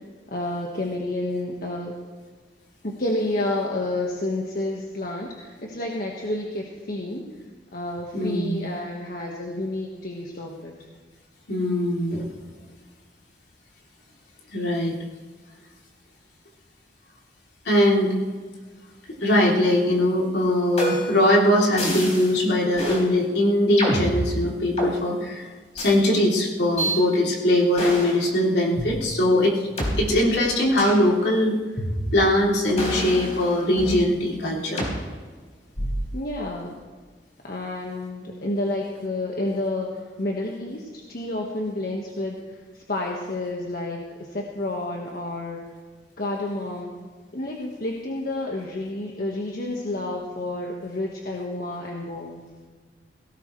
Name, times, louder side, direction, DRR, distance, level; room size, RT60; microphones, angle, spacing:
voice 1, 0.3-1.9 2.8-7.3 7.7-10.8 36.1-36.7 37.4-42.4 42.9-45.7 46.2-46.9 47.3-52.5, left 1 dB, 55° left, -1 dB, 1.5 m, -30 dB
voice 2, 8.1-8.7 11.5-12.3 14.5-15.0 17.6-18.1 19.2-25.5 25.7-29.7 30.0-31.6 32.1-34.8, left 1 dB, 70° left, -3 dB, 3.2 m, -21 dB
sound 1, 20.8-21.2 21.8-22.3 22.8-23.0 23.8-24.9 25.8-25.9 26.8-27.0 27.8-28.2 28.8-28.9 29.8-29.9 30.8-31.0 31.8-32.3 32.8-34.0 34.8-35.0 35.8-36.1, right 1 dB, 40° left, 4.4 m, -27 dB
17.5 x 17.5 x 3.2 m, 1.5 s
head